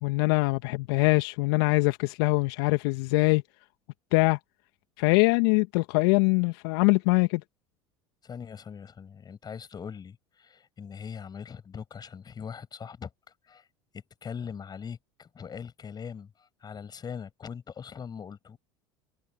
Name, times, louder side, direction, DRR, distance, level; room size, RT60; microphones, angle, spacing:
voice 1, 0.0-3.4 4.1-4.4 5.0-7.4, left 27 dB, 65° left, 1.6 m, -23 dB
voice 2, 8.2-13.1 13.4-13.7 14.2-18.6, left 7 dB, 30° left, 6.8 m, -41 dB
hypercardioid pair, 80°, 13 cm